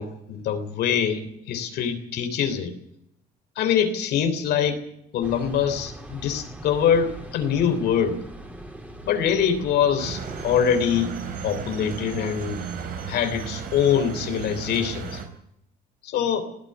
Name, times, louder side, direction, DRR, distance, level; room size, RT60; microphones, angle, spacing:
voice 1, 0.0-2.7 3.6-4.8 5.1-8.2 9.0-11.1 11.4-12.6 13.1-15.2 16.0-16.5, left 8 dB, 75° left, 6 dB, 3.5 m, -24 dB
sound 1, 5.2-10.6, right 1 dB, 10° right, 3.9 m, -40 dB
sound 2, 10.0-15.3, right 6 dB, 60° right, 4.7 m, -34 dB
20.0 x 14.5 x 9.9 m, 0.76 s
cardioid pair, 110°, 17 cm